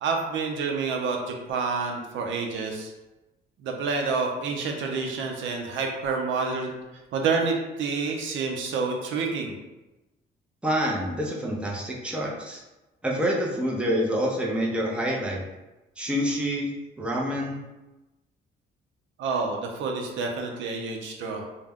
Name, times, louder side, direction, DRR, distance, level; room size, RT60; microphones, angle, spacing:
voice 1, 0.0-2.9 3.6-6.7 7.1-9.5 19.2-21.4, right 4 dB, 75° right, 2 dB, 0.5 m, -28 dB
voice 2, 10.6-12.6 13.0-15.4 16.0-16.7 17.0-17.6, equal, 5° right, -2 dB, 0.5 m, -27 dB
2.2 x 2.1 x 3.4 m, 1.0 s
cardioid pair, 90°, 20 cm